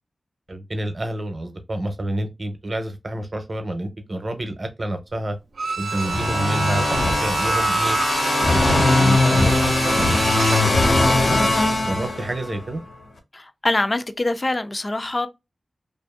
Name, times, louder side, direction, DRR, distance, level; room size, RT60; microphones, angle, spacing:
voice 1, 0.5-5.4 5.8-8.0 8.4-10.2 10.5-11.4 11.8-12.8, right 1 dB, 45° right, 0.7 m, -28 dB
Bowed string instrument, 5.6-10.8 11.1-11.2, right 4 dB, 85° right, 0.3 m, -28 dB
sound 1, 5.9-12.6, left 2 dB, 80° left, 1.3 m, -20 dB
voice 2, 13.3-15.3, left 2 dB, 35° left, 0.4 m, -24 dB
2.6 x 2.5 x 2.4 m
wide cardioid pair, 70°, 0 cm